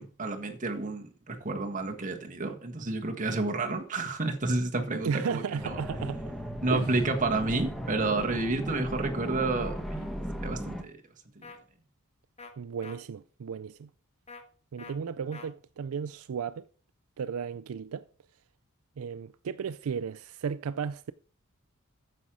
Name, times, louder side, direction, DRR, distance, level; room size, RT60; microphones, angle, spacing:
voice 1, 0.0-5.8 6.6-10.1 10.4-10.9 11.3-11.4, right 2 dB, 35° right, 1.5 m, -30 dB
voice 2, 5.0-6.2 6.7-6.9 12.6-13.9 14.7-16.6 17.2-18.1 19.0-21.1, right 6 dB, 75° right, 0.4 m, -34 dB
sound 1, 5.6-10.8, equal, ahead, 1.1 m, -36 dB
sound 2, 11.4-11.6 12.4-12.5 12.8-13.0 14.3-14.4 14.8-14.9 15.3-15.5, left 4 dB, 30° left, 1.3 m, -45 dB
9.4 x 7.5 x 4.9 m
head